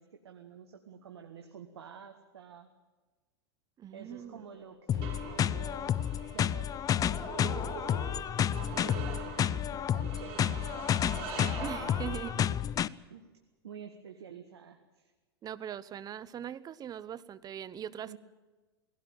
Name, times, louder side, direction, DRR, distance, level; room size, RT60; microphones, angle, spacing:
voice 1, 0.0-2.7 3.9-6.0 6.3-8.2 8.7-12.2 13.1-13.3 13.6-15.1 18.0-18.2, right 7 dB, 85° right, 5 dB, 1.9 m, -50 dB
voice 2, 3.8-4.4 11.6-12.5 15.4-18.2, right 9 dB, 30° right, 16 dB, 1.0 m, -41 dB
sound 1, 4.1-12.6, right 6 dB, 50° right, 6.1 m, -44 dB
sound 2, 4.9-12.9, left 10 dB, 25° left, 0.6 m, -31 dB
20.0 x 16.5 x 9.0 m, 1.3 s
hypercardioid pair, 105°, 13 cm